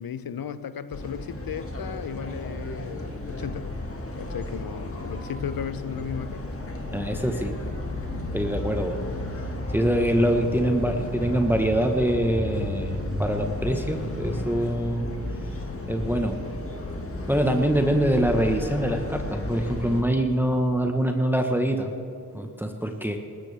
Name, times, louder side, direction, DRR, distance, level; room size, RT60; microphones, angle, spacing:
voice 1, 0.0-3.8 4.2-6.5, left 8 dB, 65° left, 14 dB, 0.7 m, -35 dB
sound 1, 0.9-20.0, left 1 dB, 35° left, 1.9 m, -33 dB
voice 2, 6.9-7.5 8.3-9.0 9.7-15.2 15.9-16.4 17.3-21.9 22.3-23.2, right 1 dB, 5° right, 4 dB, 1.2 m, -24 dB
19.5 x 13.5 x 3.5 m, 2.6 s
cardioid pair, 40°, 39 cm